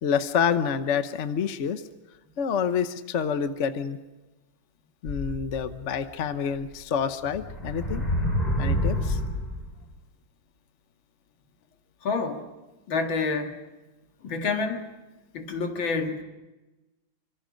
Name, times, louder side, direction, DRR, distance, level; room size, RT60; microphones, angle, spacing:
voice 1, 0.0-1.8 2.4-4.0 5.0-8.0 8.6-9.2, left 7 dB, 50° left, 10 dB, 1.0 m, -27 dB
sound 1, 5.0-6.0 6.6-6.7 7.2-9.7, equal, 20° left, 5.4 m, -28 dB
voice 2, 12.0-12.5 12.9-13.6 14.2-14.9 15.3-16.2, left 4 dB, 65° left, 5 dB, 2.6 m, -28 dB
26.5 x 25.0 x 5.2 m, 1.1 s
omnidirectional pair, 2.3 m